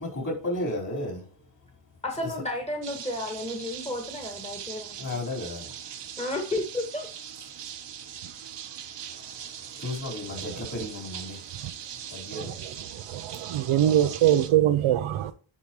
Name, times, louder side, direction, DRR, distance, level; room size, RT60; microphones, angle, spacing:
voice 1, 0.0-2.4 3.6-4.0 4.5-6.3 7.1-13.8, left 1 dB, 40° left, 4.5 m, -37 dB
voice 2, 2.0-5.0 6.2-7.1, left 1 dB, 15° left, 1.8 m, -32 dB
sound 1, 2.8-14.5, right 9 dB, 60° right, 1.0 m, -41 dB
voice 3, 12.9-15.3, right 11 dB, 85° right, 0.7 m, -23 dB
11.0 x 5.1 x 3.1 m
cardioid pair, 95°, 49 cm